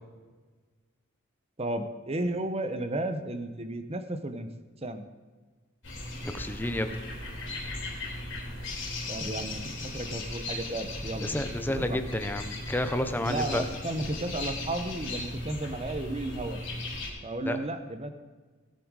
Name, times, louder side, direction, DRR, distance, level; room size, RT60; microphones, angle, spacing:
voice 1, 1.6-4.5 4.8-5.0 9.1-11.3 11.7-12.0 13.2-16.6 17.2-18.1, right 1 dB, 25° right, 9 dB, 0.8 m, -33 dB
sound 1, 5.8-17.1, left 2 dB, 55° left, 3.4 m, -37 dB
voice 2, 6.2-7.0 11.2-13.6 17.4-17.6, left 1 dB, 10° left, 8 dB, 0.7 m, -30 dB
18.0 x 7.7 x 4.8 m, 1.4 s
head